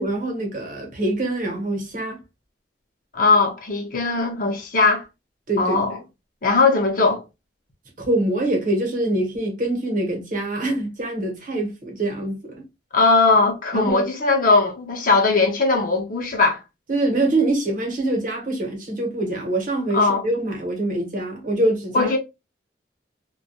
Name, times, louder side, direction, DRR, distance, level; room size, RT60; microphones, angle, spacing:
voice 1, 0.0-2.2 5.5-5.8 8.0-12.6 13.7-14.0 16.9-22.1, right 2 dB, 50° right, 0.9 m, -24 dB
voice 2, 3.1-5.0 5.6-6.0 6.4-7.2 12.9-16.6 19.9-20.2 21.9-22.2, left 3 dB, 50° left, 0.7 m, -19 dB
2.2 x 2.1 x 2.7 m
head